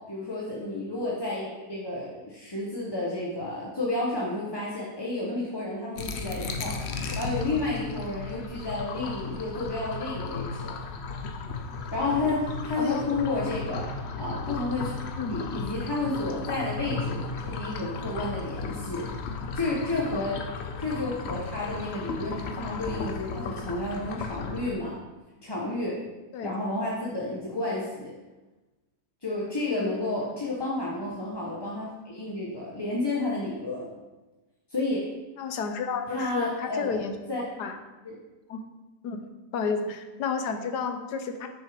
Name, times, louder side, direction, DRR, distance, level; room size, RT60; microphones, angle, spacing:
voice 1, 0.0-6.8 7.1-10.7 11.9-13.9 14.2-14.9 15.3-19.0 19.5-20.4 20.8-24.9 25.4-26.0 26.4-28.1 29.2-33.9 34.7-35.0 36.1-37.0 37.3-37.4 38.0-38.1, left 2 dB, 20° left, -5 dB, 0.8 m, -31 dB
sound 1, 6.0-24.7, left 4 dB, 55° left, 0.7 m, -35 dB
voice 2, 12.8-13.1 15.2-15.5 26.3-26.5 29.8-29.9 35.4-37.2 37.6-37.8 38.5-38.6 39.0-39.2 39.5-41.5, left 5 dB, 75° left, 7 dB, 1.3 m, -31 dB
6.6 x 6.2 x 5.0 m, 1.2 s
omnidirectional pair, 1.8 m